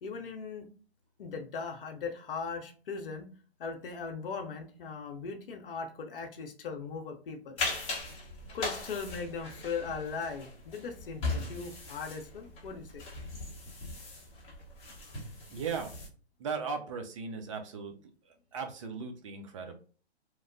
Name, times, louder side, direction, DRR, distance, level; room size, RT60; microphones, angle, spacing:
voice 1, 0.0-0.7 1.2-3.3 3.6-7.6 8.5-13.0, left 5 dB, 55° left, 5 dB, 0.7 m, -39 dB
sound 1, 7.6-16.1, left 2 dB, 15° left, 0.8 m, -39 dB
voice 2, 15.5-15.9 16.4-17.9 18.2-19.8, right 5 dB, 30° right, 4 dB, 0.4 m, -37 dB
2.9 x 2.1 x 2.5 m, 0.40 s
hypercardioid pair, 130°, 33 cm